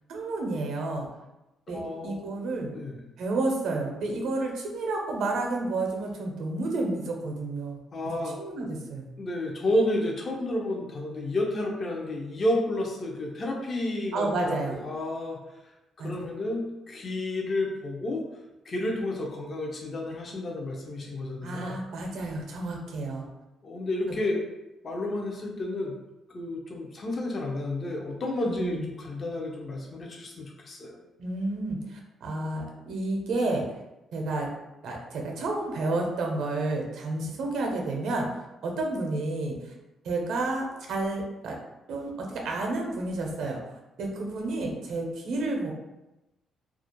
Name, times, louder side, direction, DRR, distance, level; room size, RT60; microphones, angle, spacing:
voice 1, 0.1-1.0 1.7-2.7 3.2-7.8 8.4-9.1 14.1-14.8 16.0-16.1 21.4-23.2 28.4-28.8 31.2-33.6 34.1-34.5 34.8-38.3 38.6-39.5 40.0-41.6 41.9-43.6 44.0-45.7, right 2 dB, 75° right, 1 dB, 0.5 m, -30 dB
voice 2, 1.7-2.2 2.7-3.0 7.9-8.4 9.2-15.4 16.0-18.2 18.7-21.8 23.6-24.4 24.8-25.9 26.3-31.0, left 1 dB, 45° left, 0 dB, 0.5 m, -31 dB
2.3 x 2.1 x 2.9 m, 0.98 s
cardioid pair, 90°, 0 cm